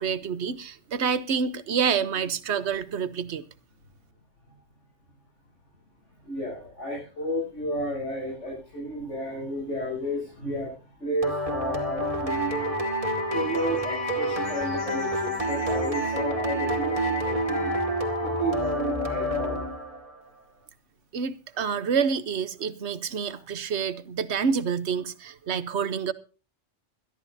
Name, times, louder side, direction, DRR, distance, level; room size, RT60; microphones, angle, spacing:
voice 1, 0.0-3.4 21.1-26.1, right 6 dB, 70° right, 1.2 m, -28 dB
voice 2, 6.2-10.7 11.0-12.8 13.3-17.7 18.2-19.6 23.3-23.4, equal, 80° left, 8.3 m, -32 dB
sound 1, 11.2-20.1, equal, 30° right, 2.3 m, -28 dB
22.0 x 13.5 x 2.8 m
omnidirectional pair, 1.2 m